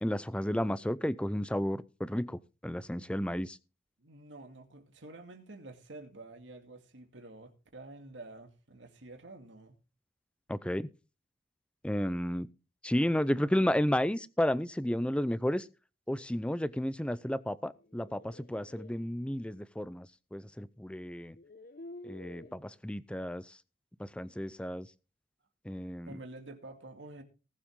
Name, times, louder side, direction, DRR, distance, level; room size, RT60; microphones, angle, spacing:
voice 1, 0.0-3.6 10.5-10.9 11.8-12.5 12.8-15.7 16.1-21.4 22.0-23.6 24.0-24.9 25.7-26.1, equal, 5° left, 0.5 m, -32 dB
voice 2, 4.0-9.8 26.1-27.2, right 2 dB, 75° right, 2.3 m, -49 dB
sound 1, 17.8-19.0 20.5-20.6 21.2-22.6, left 2 dB, 50° left, 0.8 m, -50 dB
19.0 x 7.5 x 3.7 m
head